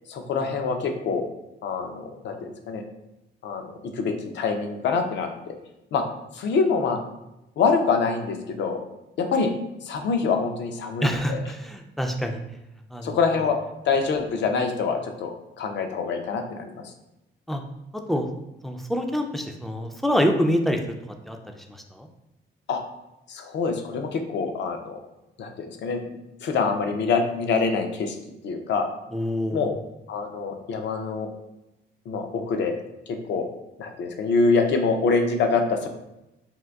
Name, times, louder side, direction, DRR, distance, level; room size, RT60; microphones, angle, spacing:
voice 1, 0.1-1.3 1.6-2.8 3.4-3.6 3.9-5.6 5.9-6.0 6.3-7.0 7.6-8.8 9.2-9.5 9.8-11.4 13.0-13.6 13.9-16.7 22.7-22.8 23.3-25.0 25.4-26.0 26.4-28.2 28.4-28.9 29.5-29.7 30.1-31.3 32.1-32.8 33.1-33.5 33.8-35.9, left 4 dB, 65° left, 5 dB, 0.5 m, -25 dB
voice 2, 11.0-12.4 12.9-13.2 17.5-17.6 18.1-18.3 18.6-20.8 21.3-21.4 21.7-22.1 29.1-29.7, equal, ahead, 3 dB, 0.3 m, -26 dB
3.6 x 2.5 x 2.3 m, 0.91 s
cardioid pair, 90°, 20 cm